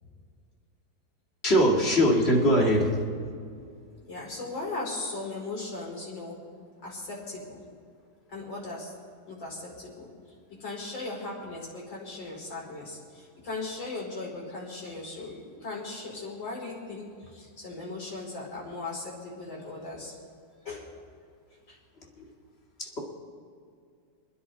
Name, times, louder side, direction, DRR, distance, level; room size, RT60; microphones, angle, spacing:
voice 1, 1.4-3.0 22.2-22.3 22.8-23.0, equal, 30° left, -1 dB, 2.5 m, -22 dB
voice 2, 4.1-6.4 6.8-7.6 8.3-8.9 9.3-10.1 10.6-20.1 20.6-20.9 21.7-21.8, left 3 dB, 70° left, -4 dB, 5.3 m, -38 dB
29.0 x 10.5 x 4.2 m, 2.3 s
omnidirectional pair, 2.1 m